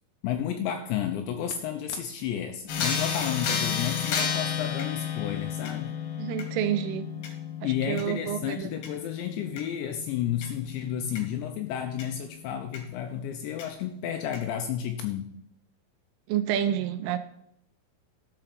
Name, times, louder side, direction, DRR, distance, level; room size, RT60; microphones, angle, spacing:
voice 1, 0.2-6.0 7.6-15.4, left 9 dB, 80° left, 6 dB, 2.7 m, -32 dB
sound 1, 2.7-12.1 12.7-12.8 13.6-13.7 14.3-14.4, left 7 dB, 65° left, 2.6 m, -32 dB
voice 2, 6.2-7.1 7.6-8.7 16.3-17.2, right 10 dB, 85° right, 11 dB, 3.2 m, -29 dB
13.5 x 5.1 x 5.9 m, 0.74 s
omnidirectional pair, 5.6 m